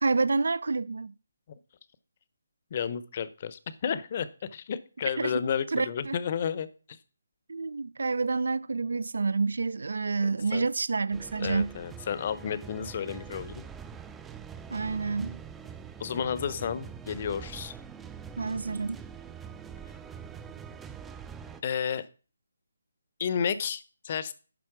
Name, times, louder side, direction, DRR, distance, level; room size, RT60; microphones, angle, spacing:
voice 1, 0.0-1.1 5.2-5.3 5.7-6.2 7.5-11.7 14.7-15.4 18.4-19.0, right 4 dB, 75° right, 0.4 m, -28 dB
voice 2, 2.7-7.0 10.2-10.7 11.4-13.6 16.0-17.7 21.6-22.1 23.2-24.3, left 7 dB, 35° left, 0.7 m, -32 dB
sound 1, 11.1-21.6, right 7 dB, 5° right, 0.4 m, -44 dB
11.0 x 4.2 x 5.9 m
hypercardioid pair, 170°, 0 cm